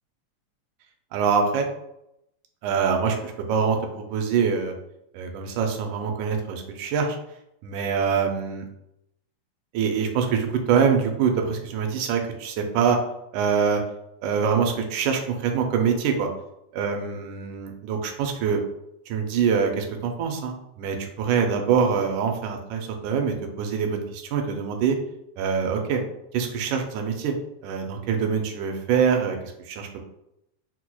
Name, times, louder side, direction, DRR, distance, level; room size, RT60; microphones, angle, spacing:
voice 1, 1.1-1.7 2.6-4.7 5.1-7.2 7.6-8.7 9.7-13.0 13.3-13.8 14.2-16.3 16.7-18.6 19.1-25.0 25.4-26.0 26.3-27.4 27.6-30.0, right 6 dB, 80° right, 4 dB, 1.9 m, -24 dB
5.8 x 2.0 x 2.2 m, 0.83 s
omnidirectional pair, 3.6 m